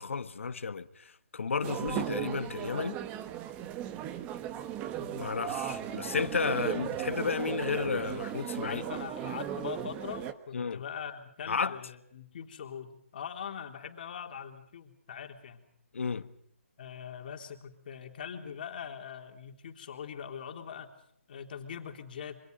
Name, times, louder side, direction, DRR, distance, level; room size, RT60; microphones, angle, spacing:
voice 1, 0.0-3.0 5.2-8.8 10.5-10.8 11.5-11.8 15.9-16.3, left 5 dB, 70° left, 1.5 m, -32 dB
sound 1, 1.6-10.3, right 11 dB, 15° right, 1.3 m, -36 dB
voice 2, 5.0-5.3 8.6-15.6 16.8-20.9 21.3-22.4, left 7 dB, 45° left, 3.6 m, -42 dB
28.5 x 26.0 x 5.4 m
hypercardioid pair, 155°, 7 cm